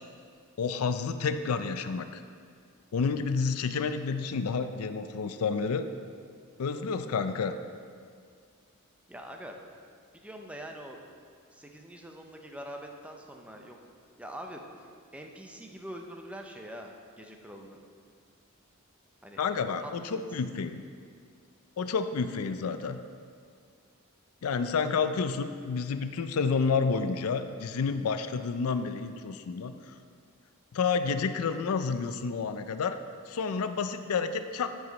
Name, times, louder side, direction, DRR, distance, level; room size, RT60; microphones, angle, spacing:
voice 1, 0.6-2.2 2.9-5.9 6.6-7.5 19.4-20.8 21.8-23.0 24.4-29.9 30.7-33.0 33.3-34.7, left 5 dB, 90° left, 9 dB, 0.4 m, -30 dB
voice 2, 9.1-9.6 10.1-11.0 11.5-13.8 14.2-14.6 15.1-17.8 19.2-19.4 19.8-20.2, equal, 5° right, 2 dB, 0.5 m, -44 dB
9.6 x 4.8 x 4.0 m, 2.1 s
head